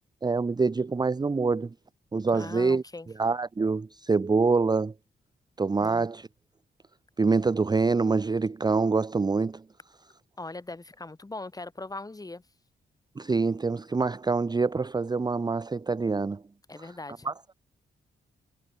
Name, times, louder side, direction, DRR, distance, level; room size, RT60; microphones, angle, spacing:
voice 1, 0.2-1.7 2.1-2.8 3.2-4.9 5.6-6.3 7.2-9.6 13.2-16.4 16.8-16.9 17.2-17.3, right 4 dB, 20° right, 0.7 m, -25 dB
voice 2, 2.3-3.1 5.8-6.1 10.4-12.4 16.7-17.3, left 2 dB, 20° left, 3.7 m, -40 dB
wide cardioid pair, 120°, 19 cm